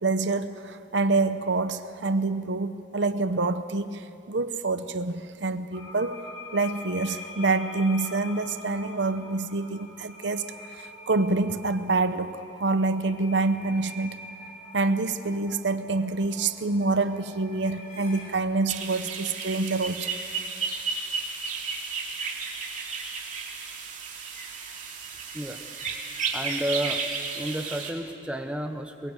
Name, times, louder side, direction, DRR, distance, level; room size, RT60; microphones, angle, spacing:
voice 1, 0.0-6.2 6.5-14.2 14.7-20.1, right 3 dB, 65° right, 11 dB, 0.8 m, -27 dB
sound 1, 5.7-18.3, left 2 dB, 35° left, 3.4 m, -45 dB
sound 2, 18.7-27.9, right 5 dB, 40° right, 2.7 m, -33 dB
voice 2, 26.3-27.0 27.3-29.1, equal, 5° right, 5 dB, 1.1 m, -31 dB
22.5 x 21.5 x 8.2 m, 2.6 s
head